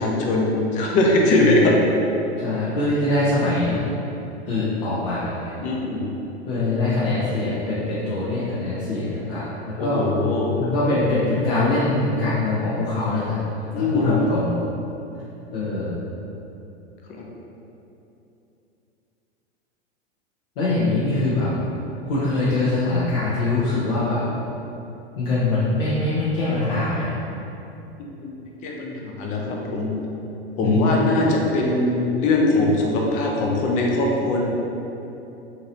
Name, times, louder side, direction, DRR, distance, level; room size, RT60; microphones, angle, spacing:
voice 1, 0.0-1.9 5.6-6.1 9.8-10.6 13.7-14.2 17.2-17.3 28.0-28.3 28.6-29.9 30.6-34.5, left 2 dB, 25° left, -1 dB, 0.4 m, -21 dB
voice 2, 2.4-3.8 4.5-5.5 6.5-10.0 10.6-13.4 13.7-14.5 15.5-16.0 20.6-21.5 22.0-24.2 25.2-27.1 30.6-30.9, left 2 dB, 55° left, -10 dB, 0.7 m, -23 dB
2.8 x 2.8 x 2.8 m, 2.9 s
figure-of-eight pair, 95°, 33 cm